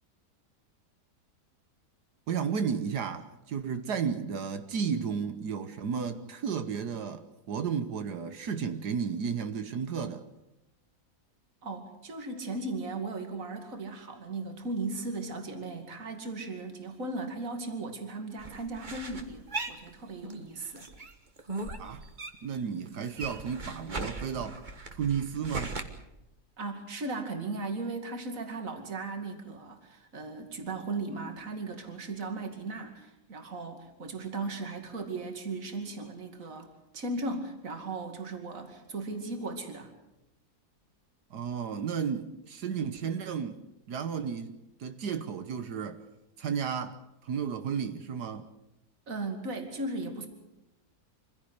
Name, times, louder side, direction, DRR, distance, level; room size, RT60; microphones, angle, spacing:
voice 1, 2.3-10.2 21.8-22.1 22.4-24.6 24.9-25.8 41.3-43.6 43.9-46.0 46.4-48.5, right 6 dB, 75° right, 1.6 m, -33 dB
voice 2, 11.6-20.9 26.6-36.7 36.9-39.9 49.1-50.3, right 3 dB, 50° right, 2.8 m, -37 dB
sound 1, 18.4-20.5 20.8-22.6 22.9-25.8, right 3 dB, 30° right, 1.6 m, -38 dB
25.5 x 16.0 x 8.1 m
omnidirectional pair, 1.8 m